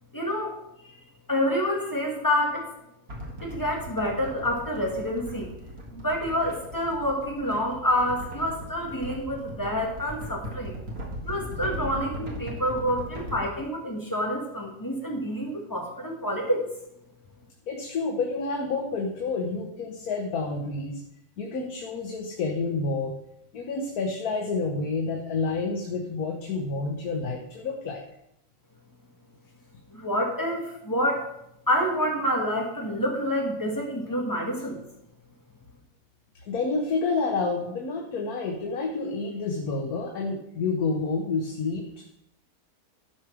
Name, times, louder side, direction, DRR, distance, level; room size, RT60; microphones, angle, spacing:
voice 1, 0.1-0.6 1.3-2.7 3.4-5.6 5.9-10.8 11.2-16.6 29.9-31.3 31.7-34.8, equal, 15° left, -1 dB, 2.0 m, -28 dB
sound 1, 3.1-13.4, right 1 dB, 75° right, 2.5 m, -38 dB
voice 2, 17.7-21.0 21.4-23.1 23.5-28.0 36.4-41.9, left 4 dB, 80° left, 2 dB, 1.5 m, -29 dB
12.0 x 4.9 x 6.1 m, 0.80 s
omnidirectional pair, 1.5 m